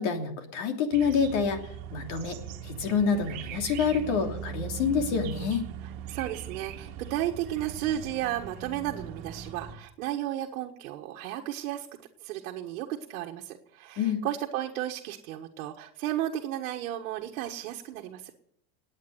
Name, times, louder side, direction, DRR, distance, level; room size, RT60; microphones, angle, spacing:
voice 1, 0.0-1.6 1.9-2.4 2.6-5.7 14.0-14.2, left 6 dB, 55° left, 5 dB, 3.1 m, -27 dB
sound 1, 0.9-9.7, right 8 dB, 40° right, 2.1 m, -40 dB
voice 2, 6.1-11.9 12.2-18.3, right 12 dB, 65° right, 1 dB, 1.6 m, -33 dB
19.0 x 8.9 x 8.0 m, 0.72 s
supercardioid pair, 170°, 44 cm